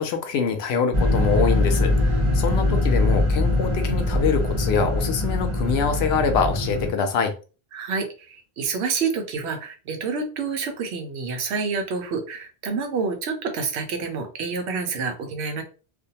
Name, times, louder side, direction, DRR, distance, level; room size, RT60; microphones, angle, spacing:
voice 1, 0.0-7.3, left 6 dB, 75° left, 0.8 m, -24 dB
sound 1, 0.9-6.9, left 2 dB, 30° right, 0.8 m, -22 dB
voice 2, 7.7-15.6, right 5 dB, 80° right, 0.9 m, -28 dB
2.5 x 2.1 x 2.8 m
omnidirectional pair, 1.1 m